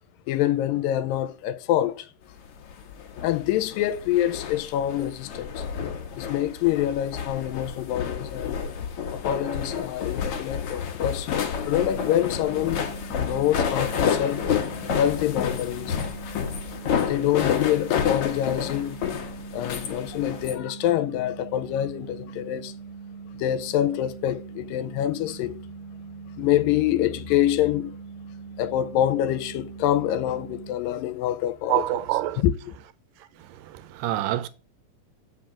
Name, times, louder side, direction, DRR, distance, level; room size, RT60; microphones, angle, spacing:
voice 1, 0.3-2.1 3.2-5.6 6.2-8.7 9.1-11.4 11.6-14.5 15.0-16.0 17.1-19.0 19.5-22.8 23.3-25.7 26.4-28.0 28.6-32.0 32.4-32.7, left 12 dB, 90° left, 2.3 m, -26 dB
sound 1, 2.6-20.5, left 7 dB, 65° left, 1.5 m, -29 dB
sound 2, 11.8-30.7, right 6 dB, 60° right, 1.7 m, -42 dB
voice 2, 31.7-32.4 33.6-34.5, right 15 dB, 80° right, 2.2 m, -26 dB
7.3 x 5.2 x 3.7 m
omnidirectional pair, 3.9 m